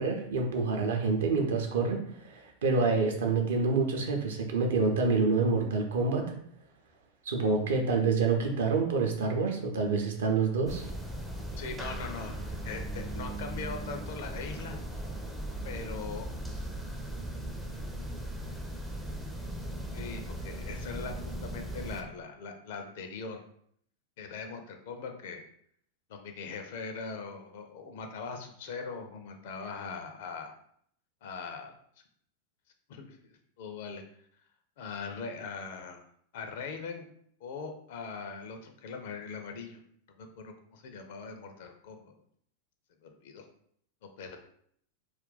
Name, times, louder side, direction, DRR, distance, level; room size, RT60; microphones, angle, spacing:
voice 1, 0.0-6.2 7.3-10.9, right 4 dB, 60° right, 2 dB, 0.6 m, -27 dB
sound 1, 10.7-22.0, right 1 dB, 5° right, 0.4 m, -38 dB
voice 2, 11.6-14.8 15.6-16.3 19.9-23.4 24.2-25.4 26.1-30.5 31.2-31.7 32.9-34.0 34.8-36.1 36.3-37.1 37.4-39.8 40.2-42.1 43.0-43.5 44.2-44.4, left 5 dB, 55° left, 5 dB, 0.4 m, -41 dB
2.4 x 2.2 x 3.8 m, 0.67 s
figure-of-eight pair, 90°, 0 cm